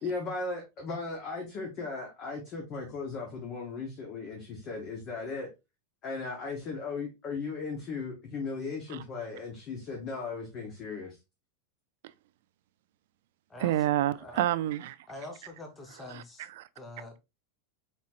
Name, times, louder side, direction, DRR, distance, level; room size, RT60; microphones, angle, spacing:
voice 1, 0.0-5.5 6.0-11.2, left 4 dB, 30° left, 1.0 m, -37 dB
voice 2, 13.6-15.0 16.1-16.2 16.6-16.7, right 13 dB, 60° right, 0.3 m, -28 dB
voice 3, 15.1-16.5 16.7-17.2, left 2 dB, 10° left, 0.8 m, -44 dB
4.2 x 4.1 x 2.5 m
supercardioid pair, 175°, 0 cm